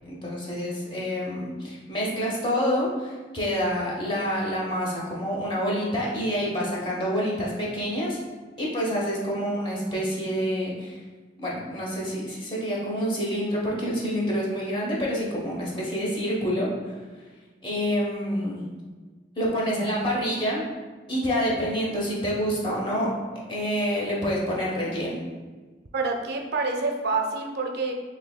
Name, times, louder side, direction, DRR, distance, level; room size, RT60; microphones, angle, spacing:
voice 1, 0.1-8.2 8.6-11.0 11.4-16.9 17.6-18.7 19.4-20.6 21.1-23.1 23.5-25.2, equal, 25° left, -5 dB, 1.0 m, -27 dB
voice 2, 25.9-28.0, right 3 dB, 60° right, 3 dB, 0.4 m, -27 dB
6.1 x 2.6 x 2.2 m, 1.4 s
head